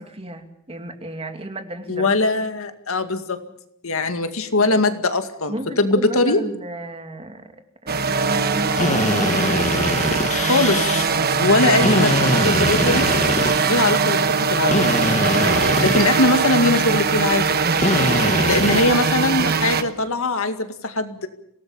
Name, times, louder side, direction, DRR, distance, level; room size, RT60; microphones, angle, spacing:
voice 1, 0.0-2.1 5.5-7.6 7.8-9.4, right 1 dB, 25° right, 6 dB, 2.4 m, -34 dB
voice 2, 1.9-3.4 3.8-6.4 10.3-11.1 11.4-13.1 13.7-14.9 15.8-17.4 18.4-21.3, left 2 dB, 70° left, 8 dB, 2.1 m, -21 dB
sound 1, 7.9-19.8, right 5 dB, 45° right, 1.3 m, -21 dB
Drill, 8.8-11.0 11.8-14.0 14.7-16.6 17.8-19.2, left 2 dB, 35° left, 1.7 m, -23 dB
26.0 x 18.0 x 7.1 m, 0.73 s
head